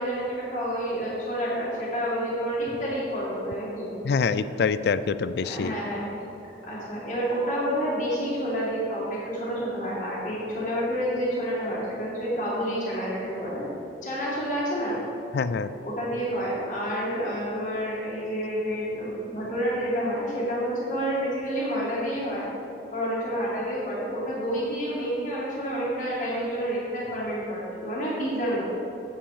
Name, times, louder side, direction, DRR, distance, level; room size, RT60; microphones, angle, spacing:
voice 1, 0.0-3.9 5.5-6.0 6.6-13.7 14.0-15.0 15.8-22.5 22.9-28.7, equal, 40° left, -8 dB, 2.3 m, -29 dB
voice 2, 4.0-5.8 15.3-15.7, left 5 dB, 65° left, 14 dB, 0.3 m, -25 dB
8.6 x 7.9 x 4.8 m, 3.0 s
head